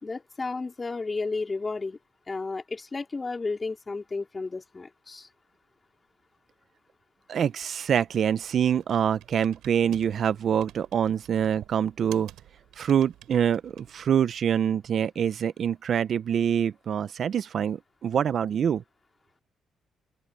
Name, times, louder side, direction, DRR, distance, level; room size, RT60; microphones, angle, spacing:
voice 1, 0.0-2.0 2.3-5.3, left 3 dB, 25° left, 3.9 m, -32 dB
voice 2, 7.3-12.3 12.8-18.8, right 8 dB, 60° right, 0.7 m, -25 dB
Computer keyboard, 7.6-14.6, right 14 dB, 90° right, 4.4 m, -52 dB
open air
cardioid pair, 90°, 0 cm